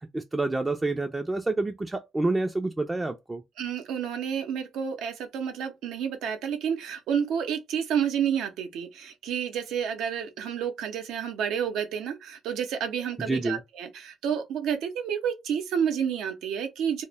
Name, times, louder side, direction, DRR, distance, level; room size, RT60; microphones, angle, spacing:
voice 1, 0.1-3.4 13.2-13.6, right 2 dB, 20° right, 0.3 m, -28 dB
voice 2, 3.6-17.0, right 8 dB, 85° right, 0.6 m, -30 dB
2.1 x 2.0 x 3.3 m
cardioid pair, 90°, 0 cm